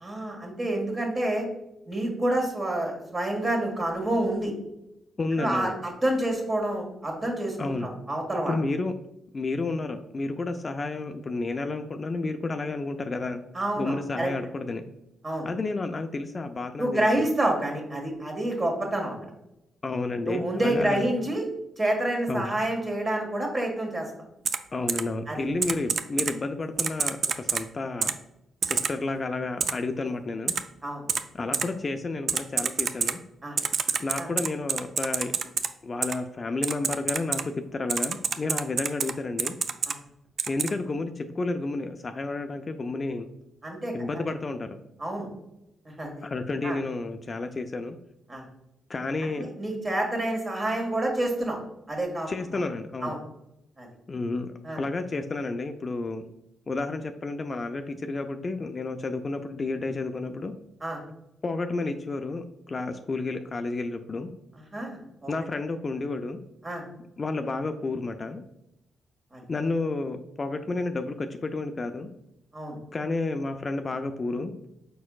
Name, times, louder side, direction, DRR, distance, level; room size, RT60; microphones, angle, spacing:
voice 1, 0.0-1.5 1.9-4.5 5.4-8.5 13.5-14.3 15.2-15.5 16.8-19.2 20.2-21.4 21.8-24.1 25.3-25.5 30.8-31.0 33.4-33.6 34.2-34.3 39.9-40.0 43.6-44.2 45.0-45.3 46.0-46.2 46.6-46.8 48.3-48.5 49.4-51.6 51.9-52.3 53.0-53.2 53.8-53.9 54.6-54.8 60.8-61.0 64.6-65.3 66.6-66.8 69.3-69.4 72.5-72.8, right 1 dB, 30° right, 1 dB, 1.6 m, -28 dB
voice 2, 5.2-5.7 7.6-7.9 8.5-8.9 9.3-13.4 13.8-14.9 15.4-17.2 19.8-21.0 22.3-22.5 24.7-28.1 28.6-30.5 31.3-33.2 34.0-35.4 35.8-39.6 40.5-43.3 43.9-44.8 46.2-48.0 48.9-49.5 52.3-53.1 54.1-56.2 56.7-60.5 61.4-64.3 65.3-66.4 67.2-68.4 69.5-72.1 72.9-74.5, left 3 dB, 40° left, 7 dB, 0.4 m, -31 dB
Typing, 24.4-24.6 24.9-25.0 25.6-26.3 26.8-27.6 28.0-28.1 28.6-28.9 29.6-29.7 30.5-30.6 31.1-31.2 31.5-31.6 32.3-33.1 33.6-35.7 36.0-36.1 36.6-37.4 37.9-39.1 39.4-39.9 40.4-40.7, right 6 dB, 60° right, 0.3 m, -26 dB
4.9 x 4.3 x 2.3 m, 0.86 s
supercardioid pair, 55°, 0 cm